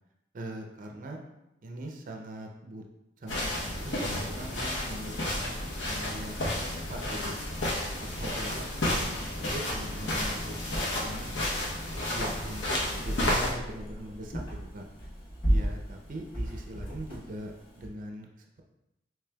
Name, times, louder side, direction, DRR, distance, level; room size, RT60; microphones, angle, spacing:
voice 1, 0.3-1.2 1.6-2.8 3.2-7.4 8.0-11.3 12.1-14.9 15.5-18.6, right 1 dB, 45° right, 2 dB, 0.4 m, -42 dB
sound 1, 3.3-13.5, left 1 dB, 70° left, 0.8 m, -32 dB
sound 2, 12.9-17.9, equal, 30° left, 0.9 m, -33 dB
5.0 x 3.2 x 2.2 m, 0.89 s
head